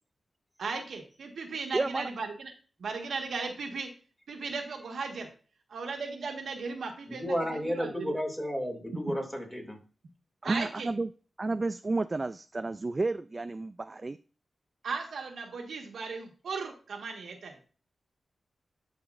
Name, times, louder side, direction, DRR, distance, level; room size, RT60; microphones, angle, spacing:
voice 1, 0.6-2.5 2.8-3.9 4.3-5.3 5.7-8.1 10.4-10.9 14.8-17.5, right 4 dB, 80° right, 3 dB, 1.5 m, -36 dB
voice 2, 1.7-2.1 10.4-11.1 11.4-14.2, right 3 dB, 35° right, 12 dB, 0.3 m, -31 dB
voice 3, 7.1-9.8, equal, 10° left, 0 dB, 2.6 m, -32 dB
11.5 x 4.9 x 2.6 m, 0.38 s
cardioid pair, 65°, 0 cm